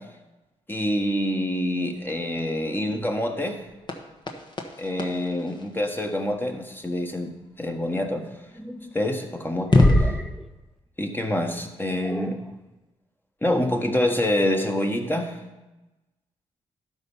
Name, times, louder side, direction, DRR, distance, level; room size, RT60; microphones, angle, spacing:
voice 1, 0.7-3.6 4.8-8.2 8.9-10.1 11.0-12.4 13.4-15.4, left 1 dB, 15° left, 3 dB, 1.4 m, -26 dB
sound 1, 1.9-6.5 8.8-8.9 9.6-10.2, left 2 dB, 35° left, 1.3 m, -25 dB
sound 2, 8.1-9.0 9.7-10.5 12.0-12.5, equal, ahead, 0.5 m, -37 dB
12.0 x 4.5 x 5.5 m, 1.1 s
supercardioid pair, 60°, 14 cm